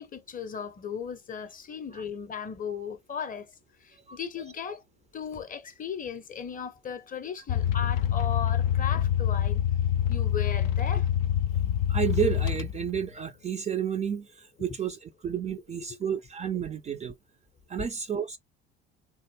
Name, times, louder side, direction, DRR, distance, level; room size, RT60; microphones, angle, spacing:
voice 1, 0.0-3.5 3.8-4.8 5.1-9.6 10.1-11.1 17.8-17.9, left 7 dB, 25° left, 0.6 m, -36 dB
sound 1, 7.5-13.1, left 10 dB, 65° left, 0.5 m, -26 dB
voice 2, 11.9-17.1 17.7-18.4, right 8 dB, 20° right, 0.4 m, -31 dB
3.4 x 2.1 x 3.2 m
hypercardioid pair, 65°, 32 cm